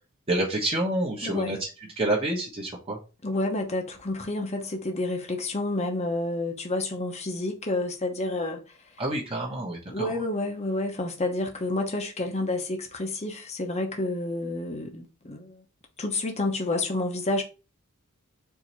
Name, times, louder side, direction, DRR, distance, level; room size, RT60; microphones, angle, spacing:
voice 1, 0.3-1.6 2.0-3.0 9.0-10.1, right 1 dB, 25° right, 1.1 m, -28 dB
voice 2, 1.2-1.6 3.2-8.6 9.9-15.6 16.0-17.4, left 2 dB, 30° left, 0.9 m, -29 dB
4.6 x 2.8 x 4.1 m
head